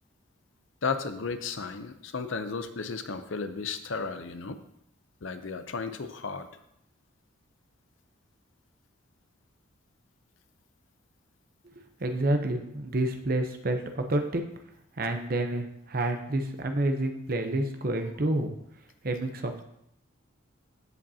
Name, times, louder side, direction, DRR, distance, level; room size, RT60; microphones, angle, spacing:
voice 1, 0.8-4.6 5.2-6.5, left 4 dB, 70° left, 9 dB, 0.6 m, -34 dB
voice 2, 12.0-14.4 15.0-18.5 19.0-19.6, right 1 dB, 45° right, 5 dB, 0.7 m, -29 dB
14.5 x 5.1 x 2.8 m, 0.76 s
head